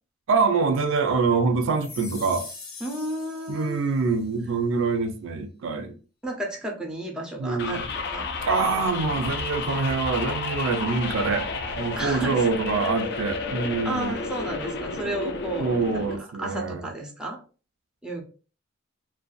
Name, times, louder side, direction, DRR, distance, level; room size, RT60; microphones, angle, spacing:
voice 1, 0.3-2.4 3.5-6.0 7.4-7.8 8.5-11.5 11.8-14.2 15.6-16.9, right 4 dB, 65° right, 0.4 m, -25 dB
sound 1, 1.7-4.2, left 4 dB, 75° left, 0.8 m, -42 dB
voice 2, 2.8-3.8 6.2-8.3 8.6-8.8 12.0-12.5 13.8-17.4 18.0-18.2, right 1 dB, 5° right, 0.5 m, -33 dB
sound 2, 7.6-16.2, left 4 dB, 55° left, 0.4 m, -31 dB
2.5 x 2.2 x 2.3 m
head